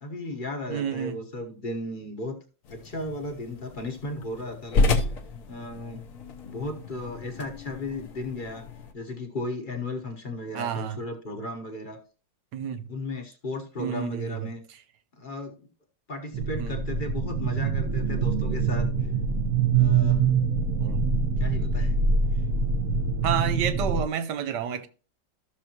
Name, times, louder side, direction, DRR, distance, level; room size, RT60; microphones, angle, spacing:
voice 1, 0.0-2.4 2.7-5.0 5.5-6.0 6.4-8.6 8.9-12.0 12.9-14.6 15.2-15.7 16.1-18.9 19.7-20.2 21.4-22.0, left 2 dB, 30° left, 1.1 m, -35 dB
voice 2, 0.7-1.2 10.5-11.0 12.5-12.8 13.8-14.5 16.6-16.8 20.8-21.2 23.2-24.9, right 8 dB, 70° right, 1.4 m, -30 dB
sound 1, 2.6-8.9, left 3 dB, 55° left, 1.2 m, -31 dB
sound 2, 16.3-24.0, right 5 dB, 55° right, 1.2 m, -24 dB
13.5 x 6.7 x 2.9 m
omnidirectional pair, 2.0 m